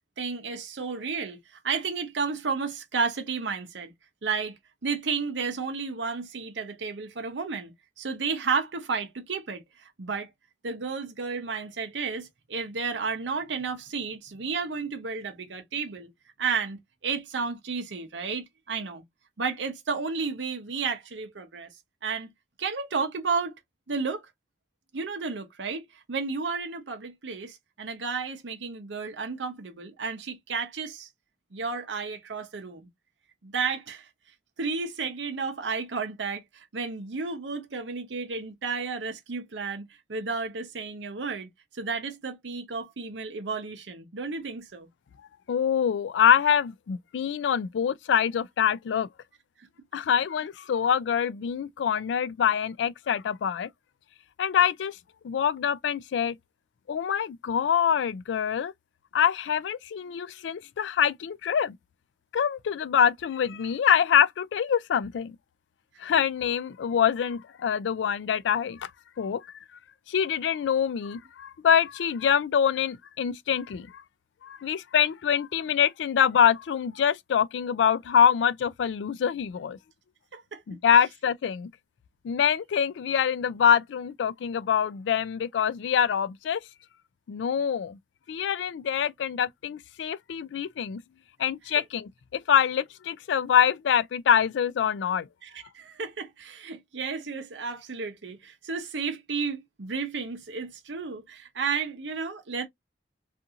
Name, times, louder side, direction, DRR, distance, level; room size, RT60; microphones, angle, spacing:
voice 1, 0.2-1.4 1.6-3.9 4.2-4.5 4.8-10.3 10.6-16.1 16.4-19.0 19.4-21.7 22.0-22.3 22.6-23.5 23.9-24.2 24.9-31.1 31.5-32.9 33.4-34.1 34.6-41.5 41.7-44.9 49.6-49.7 80.3-80.8 95.4-102.7, right 5 dB, 85° right, 0.7 m, -32 dB
voice 2, 45.5-49.1 49.9-53.7 54.4-55.0 55.2-56.4 56.9-58.7 59.1-61.7 62.3-65.4 66.0-68.9 69.2-69.5 70.1-74.0 74.4-79.8 80.7-81.7 82.2-86.6 87.3-88.0 88.3-91.0 91.4-95.3, left 8 dB, 90° left, 0.3 m, -25 dB
2.5 x 2.4 x 2.7 m
head